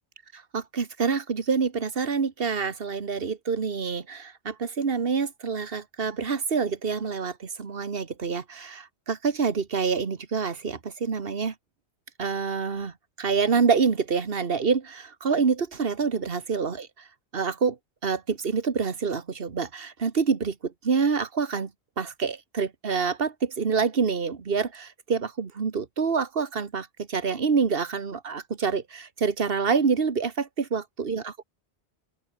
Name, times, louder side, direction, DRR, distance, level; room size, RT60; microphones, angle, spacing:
voice 1, 0.3-11.5 12.2-12.9 13.2-16.9 17.3-17.8 18.0-21.7 22.0-31.4, right 5 dB, 60° right, 1.8 m, -27 dB
open air
omnidirectional pair, 1.1 m